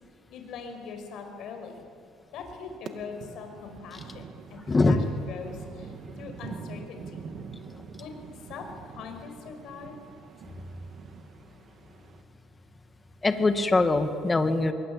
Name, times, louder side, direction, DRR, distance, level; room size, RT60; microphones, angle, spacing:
voice 1, 0.3-1.9 2.3-7.2 8.0-8.2 8.4-10.0, left 5 dB, 60° left, 5 dB, 5.6 m, -42 dB
sound 1, 2.9-12.2, right 6 dB, 50° right, 2.1 m, -45 dB
voice 2, 4.7-5.0 13.2-14.7, left 3 dB, 15° left, 8 dB, 2.1 m, -22 dB
27.0 x 22.5 x 8.7 m, 2.4 s
cardioid pair, 125°, 0 cm